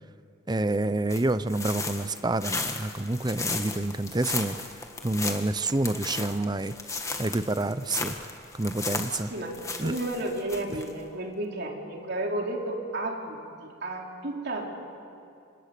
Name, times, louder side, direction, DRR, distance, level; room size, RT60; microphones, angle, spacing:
voice 1, 0.5-4.6 5.0-6.7 7.2-8.2 8.5-9.3 9.8-9.9, right 2 dB, 20° right, 13 dB, 0.7 m, -28 dB
sound 1, 1.1-10.9, left 3 dB, 15° left, 1.7 m, -35 dB
voice 2, 9.3-14.6, right 1 dB, 55° right, 0 dB, 3.8 m, -32 dB
30.0 x 26.5 x 6.9 m, 2.5 s
head